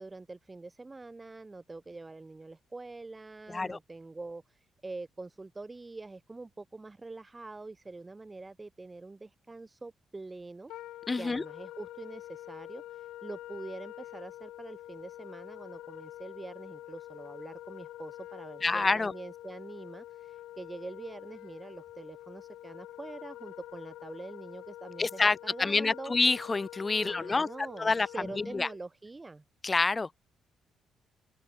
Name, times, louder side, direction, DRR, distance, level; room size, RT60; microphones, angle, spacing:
voice 1, 0.0-26.1 27.0-29.4, right 3 dB, 20° right, 3.1 m, -45 dB
Wind instrument woodwind instrument, 10.7-28.8, left 14 dB, 85° left, 1.0 m, -46 dB
voice 2, 11.1-11.4 18.6-19.1 25.0-27.5 27.8-28.1 28.4-28.7 29.6-30.2, left 3 dB, 25° left, 0.5 m, -27 dB
open air
cardioid pair, 90°, 0 cm